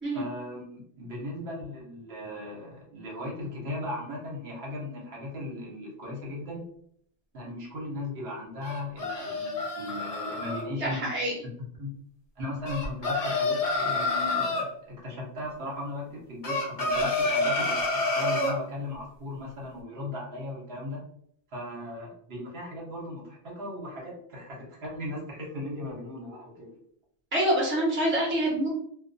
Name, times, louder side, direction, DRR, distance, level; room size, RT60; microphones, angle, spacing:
voice 1, 0.1-6.6 7.3-11.0 11.8-11.9 12.4-21.0 21.5-26.8, left 1 dB, 65° right, -3 dB, 1.0 m, -37 dB
sound 1, 8.6-10.6 12.7-14.7 16.4-18.6, left 2 dB, 45° left, 0.5 m, -28 dB
voice 2, 10.8-11.3 27.3-28.7, right 1 dB, 10° right, -4 dB, 0.7 m, -26 dB
2.3 x 2.2 x 2.5 m, 0.66 s
omnidirectional pair, 1.2 m